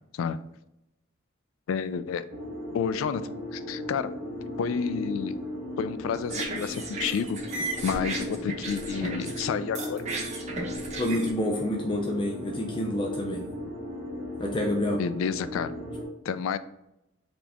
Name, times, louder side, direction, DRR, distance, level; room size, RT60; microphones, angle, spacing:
voice 1, 1.7-2.2 2.7-3.2 3.5-4.1 4.6-5.4 5.8-7.4 7.8-10.0 15.0-15.7 16.3-16.6, left 6 dB, 85° left, 13 dB, 0.3 m, -30 dB
sound 1, 2.3-16.1, left 1 dB, 55° right, 1.1 m, -36 dB
sound 2, 6.0-9.4 9.7-11.3, right 2 dB, 35° right, 0.8 m, -35 dB
voice 2, 10.9-13.4 14.4-15.0, left 1 dB, 25° left, 0 dB, 0.4 m, -28 dB
4.2 x 2.8 x 3.3 m, 0.85 s
head